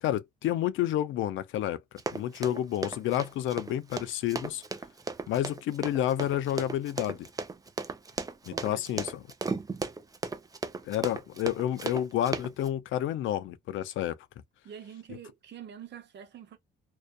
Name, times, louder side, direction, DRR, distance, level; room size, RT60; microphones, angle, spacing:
voice 1, 0.0-1.8 2.1-4.6 5.3-7.3 8.5-9.1 10.9-14.2, left 12 dB, 80° left, 0.5 m, -30 dB
Run, 2.0-12.7, right 4 dB, 20° right, 0.5 m, -35 dB
voice 2, 8.5-9.1 14.6-16.6, right 8 dB, 60° right, 0.9 m, -46 dB
2.6 x 2.2 x 2.2 m
cardioid pair, 90°, 20 cm